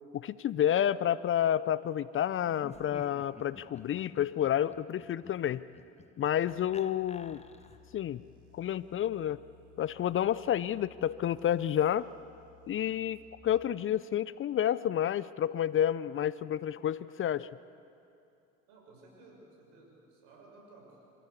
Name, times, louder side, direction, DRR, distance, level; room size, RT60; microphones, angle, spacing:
voice 1, 0.1-5.6 6.2-7.4 7.9-8.2 8.5-9.4 9.8-12.1 12.7-17.5, left 10 dB, 35° left, 18 dB, 0.6 m, -30 dB
Laughter, 2.5-8.0, left 4 dB, 20° left, 1.2 m, -53 dB
sound 1, 6.5-13.4, left 8 dB, 45° right, 5.5 m, -60 dB
voice 2, 18.7-21.0, right 2 dB, 70° right, 0 dB, 7.0 m, -56 dB
26.5 x 15.5 x 8.4 m, 2.7 s
hypercardioid pair, 70°, 34 cm